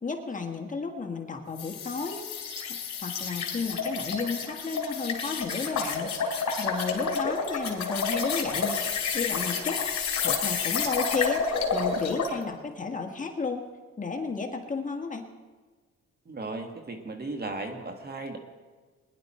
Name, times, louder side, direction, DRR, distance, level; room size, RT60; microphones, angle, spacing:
voice 1, 0.0-2.3 3.0-8.8 9.1-9.8 10.2-13.7 14.0-15.3, left 4 dB, 25° left, 2 dB, 1.6 m, -33 dB
sound 1, 1.6-12.4, left 5 dB, 65° left, 2.8 m, -30 dB
voice 2, 16.3-18.4, right 2 dB, 30° right, 5 dB, 1.8 m, -36 dB
21.0 x 11.0 x 4.4 m, 1.4 s
cardioid pair, 90°, 30 cm